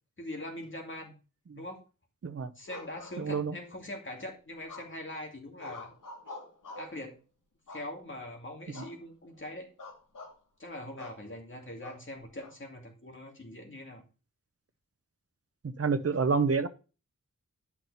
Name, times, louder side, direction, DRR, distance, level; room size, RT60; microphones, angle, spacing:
voice 1, 0.2-1.1 1.5-1.8 2.6-5.9 6.8-7.1 7.7-9.7 10.6-14.0, left 1 dB, 40° left, 1 dB, 2.4 m, -42 dB
sound 1, 2.7-3.7 4.7-5.1 5.6-7.0 7.7-8.3 8.7-9.0 9.3-9.4 9.8-10.4 11.0-11.2 11.8-12.5, left 2 dB, 85° left, 2.4 m, -46 dB
voice 2, 3.2-3.5 8.7-8.8 15.8-16.7, right 5 dB, 50° right, 11 dB, 0.9 m, -28 dB
11.0 x 6.1 x 4.1 m, 0.33 s
wide cardioid pair, 110°, 31 cm